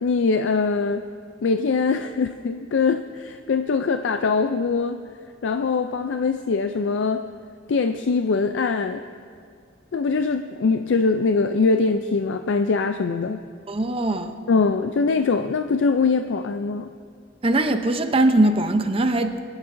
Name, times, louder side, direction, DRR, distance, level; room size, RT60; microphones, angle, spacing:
voice 1, 0.0-1.0 1.4-5.0 5.4-7.3 7.7-9.0 9.9-13.4 14.5-16.9, left 4 dB, 70° left, 8 dB, 0.4 m, -22 dB
voice 2, 13.7-14.4 17.4-19.4, right 2 dB, 30° right, 7 dB, 0.7 m, -21 dB
24.0 x 11.0 x 2.6 m, 2.1 s
head